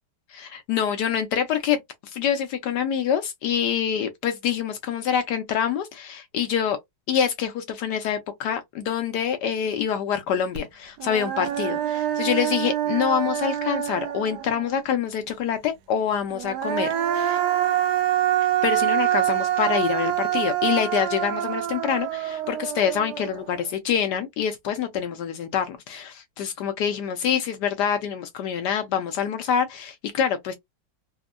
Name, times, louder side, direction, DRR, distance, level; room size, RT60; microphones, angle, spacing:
voice 1, 0.3-6.8 7.1-17.4 18.6-30.5, left 8 dB, 75° left, 1.0 m, -26 dB
Human voice, 10.6-10.7 11.0-14.7 16.3-23.6, right 11 dB, 75° right, 1.0 m, -25 dB
3.5 x 2.0 x 2.3 m
omnidirectional pair, 2.2 m